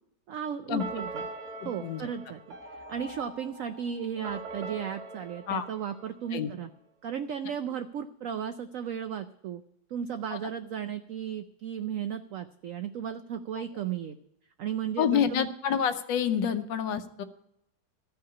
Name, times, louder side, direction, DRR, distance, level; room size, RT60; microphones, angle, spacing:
voice 1, 0.3-1.2 1.6-2.4 2.7-6.7 7.0-9.6 9.9-14.2 14.6-15.5, right 8 dB, 75° right, 9 dB, 0.7 m, -35 dB
sound 1, 0.8-6.5, right 3 dB, 55° right, 1.9 m, -42 dB
voice 2, 1.6-2.0 5.5-5.7 6.3-6.5 10.3-10.4 13.5-13.6 15.0-17.2, left 8 dB, 80° left, 9 dB, 1.5 m, -28 dB
14.0 x 5.7 x 9.7 m, 0.80 s
omnidirectional pair, 2.0 m